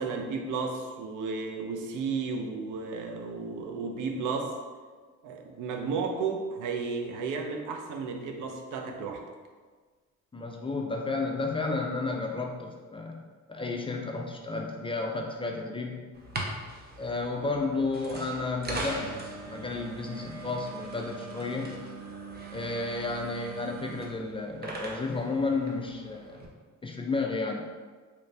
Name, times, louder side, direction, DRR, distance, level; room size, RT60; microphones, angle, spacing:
voice 1, 0.0-4.6 5.2-9.2, right 4 dB, 85° right, 3 dB, 0.5 m, -33 dB
voice 2, 10.3-16.0 17.0-21.7 22.5-26.4 26.8-27.7, left 3 dB, 20° left, 1 dB, 0.3 m, -32 dB
sound 1, 16.1-26.5, right 2 dB, 35° right, 0.6 m, -40 dB
3.2 x 2.5 x 3.2 m, 1.4 s
cardioid pair, 90°, 30 cm